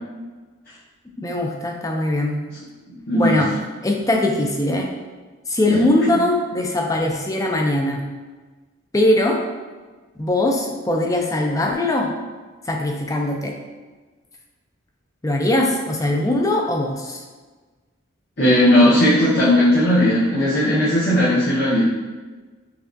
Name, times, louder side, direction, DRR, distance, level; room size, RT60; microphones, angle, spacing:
voice 1, 1.2-2.4 3.1-3.5 3.8-4.9 5.5-8.0 8.9-9.4 10.2-12.1 12.7-13.5 15.2-17.2, left 1 dB, 15° left, 1 dB, 0.4 m, -21 dB
voice 2, 3.1-3.4 5.7-5.8 18.4-21.8, left 1 dB, 50° left, -10 dB, 0.9 m, -16 dB
5.7 x 2.3 x 2.6 m, 1.3 s
head